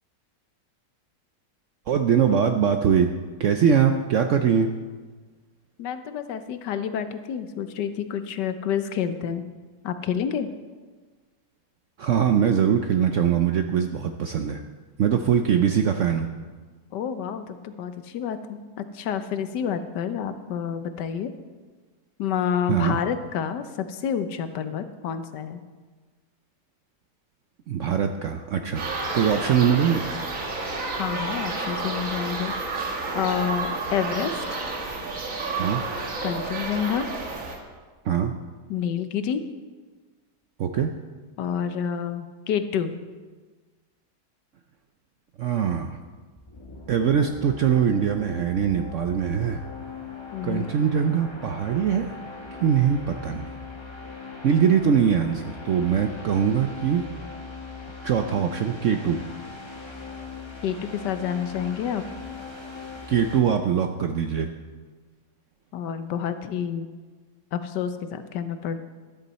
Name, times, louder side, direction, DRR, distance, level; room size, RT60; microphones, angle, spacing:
voice 1, 1.9-3.1 3.4-4.7 12.0-14.6 15.0-16.3 22.7-23.0 27.7-28.9 29.1-30.1 35.5-35.8 38.0-38.3 40.6-40.9 45.4-46.0 46.9-49.6 50.4-52.2 52.6-53.5 54.4-57.0 58.0-59.2 63.1-64.5, right 8 dB, 65° right, 6 dB, 0.7 m, -22 dB
voice 2, 5.8-9.4 9.8-10.5 16.9-18.6 18.9-21.3 22.2-25.6 30.9-32.5 33.1-34.6 36.2-37.1 38.7-39.4 41.4-43.0 50.3-50.7 60.6-62.0 65.7-66.9 67.5-68.8, left 8 dB, 75° left, 10 dB, 1.4 m, -28 dB
sound 1, 28.8-37.6, right 3 dB, 50° right, 1.7 m, -30 dB
sound 2, 46.4-63.4, left 4 dB, 20° left, 1.1 m, -40 dB
13.5 x 11.5 x 4.2 m, 1.4 s
omnidirectional pair, 1.9 m